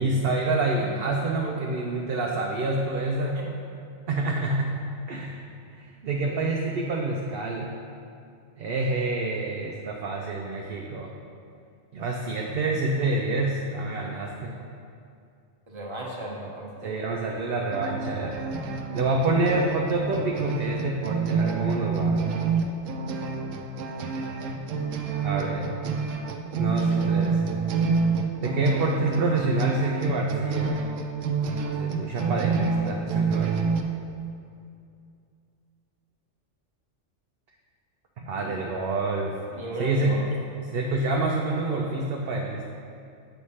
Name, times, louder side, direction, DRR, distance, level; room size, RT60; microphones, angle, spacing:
voice 1, 0.0-3.4 4.1-4.7 5.1-5.4 5.7-7.7 8.6-11.1 11.9-14.5 16.8-18.4 18.9-22.2 25.2-25.7 26.5-27.4 28.4-30.8 31.8-33.7 38.2-39.3 39.8-40.3 40.6-42.6, right 2 dB, 60° right, -1 dB, 0.7 m, -27 dB
voice 2, 15.7-16.9 38.4-38.6 39.5-40.2, right 1 dB, 25° right, -4 dB, 1.0 m, -35 dB
sound 1, 17.7-33.8, right 5 dB, 90° right, 1.0 m, -28 dB
7.9 x 3.2 x 5.5 m, 2.4 s
omnidirectional pair, 1.3 m